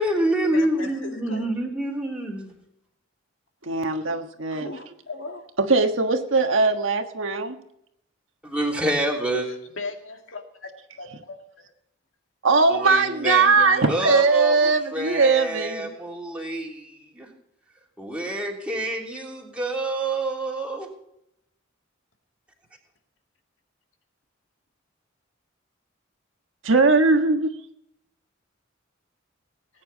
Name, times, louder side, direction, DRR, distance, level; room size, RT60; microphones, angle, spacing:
voice 1, 0.0-2.5 8.4-9.5 12.7-17.3 18.0-20.9, right 1 dB, 5° right, -2 dB, 3.1 m, -27 dB
voice 2, 0.5-1.4 4.5-5.4 9.4-10.7 11.0-11.7, left 3 dB, 75° left, 3 dB, 2.2 m, -38 dB
voice 3, 3.6-4.7 5.6-7.6 12.4-15.9 26.6-27.5, right 3 dB, 80° right, 6 dB, 1.4 m, -20 dB
19.0 x 9.5 x 4.1 m, 0.76 s
head